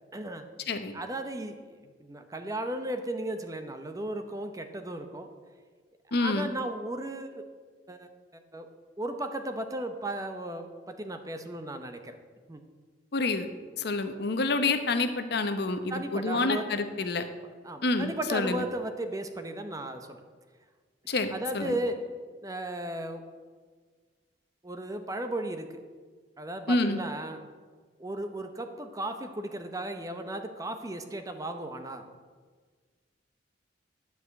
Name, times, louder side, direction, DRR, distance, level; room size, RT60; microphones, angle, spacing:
voice 1, 0.1-0.5 0.9-5.3 6.1-7.5 7.9-8.1 8.5-8.7 9.0-12.1 12.5-12.6 15.9-16.6 17.6-20.2 21.3-22.0 22.4-23.2 24.6-25.7 26.4-27.5 28.0-32.0, right 1 dB, 20° right, 7 dB, 0.7 m, -35 dB
voice 2, 6.1-6.5 13.1-13.5 13.8-17.2 17.8-18.6 21.1-21.7 26.7-27.0, left 3 dB, 60° left, 8 dB, 0.8 m, -28 dB
11.0 x 4.9 x 8.0 m, 1.5 s
head